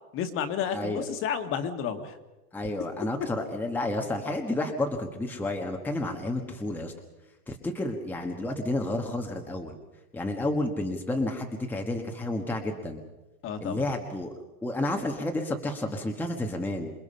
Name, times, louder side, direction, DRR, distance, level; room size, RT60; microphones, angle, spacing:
voice 1, 0.1-2.2 13.4-13.8, left 7 dB, 25° left, 8 dB, 1.9 m, -31 dB
voice 2, 0.7-1.1 2.5-6.9 7.5-9.8 10.1-13.0 13.6-14.3 14.6-16.9, left 1 dB, 5° left, 3 dB, 1.5 m, -31 dB
27.5 x 21.5 x 5.6 m, 1.1 s
hypercardioid pair, 150°, 46 cm